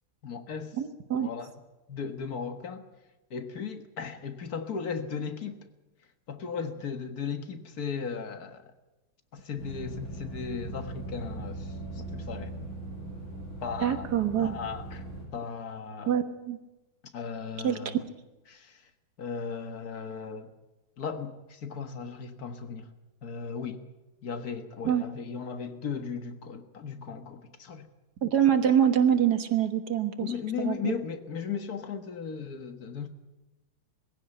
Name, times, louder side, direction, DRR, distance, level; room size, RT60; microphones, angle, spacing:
voice 1, 0.2-0.7 1.1-1.5 1.9-2.8 3.3-5.6 6.3-8.6 9.3-12.5 13.6-14.1 14.4-15.0 15.3-16.2 17.1-18.0 18.5-18.8 19.2-20.5 21.0-22.9 23.2-23.8 24.2-27.9 30.2-33.1, left 6 dB, 50° left, 1.8 m, -36 dB
voice 2, 0.8-1.3 13.8-14.5 16.1-16.6 17.6-18.0 24.8-25.1 28.2-30.3 30.6-30.9, right 9 dB, 55° right, 1.8 m, -25 dB
sound 1, 9.6-15.2, right 2 dB, 70° left, 7.4 m, -39 dB
22.0 x 16.0 x 8.8 m
omnidirectional pair, 2.3 m